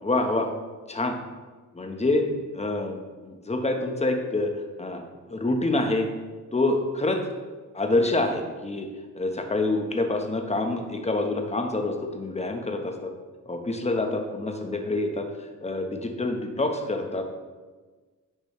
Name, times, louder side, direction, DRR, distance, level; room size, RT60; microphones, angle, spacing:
voice 1, 0.0-0.5 0.9-1.2 1.7-4.5 4.8-5.0 5.3-6.1 6.5-7.2 7.7-8.9 9.1-13.1 13.5-17.2, left 2 dB, 20° left, 4 dB, 1.2 m, -26 dB
10.5 x 5.2 x 3.2 m, 1.3 s
cardioid pair, 65°, 32 cm